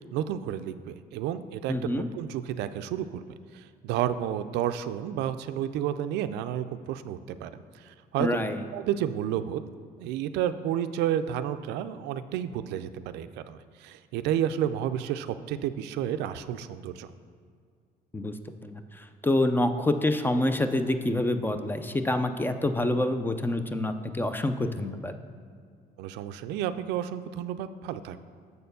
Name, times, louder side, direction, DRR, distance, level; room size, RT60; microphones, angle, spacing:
voice 1, 0.0-3.3 3.5-8.3 8.7-9.6 10.0-17.1 26.0-28.2, right 10 dB, 90° right, 11 dB, 0.4 m, -31 dB
voice 2, 1.7-2.1 8.2-8.7 18.1-18.3 18.6-25.1, left 1 dB, 10° left, 9 dB, 0.4 m, -27 dB
6.7 x 4.3 x 6.7 m, 2.1 s
cardioid pair, 110°, 17 cm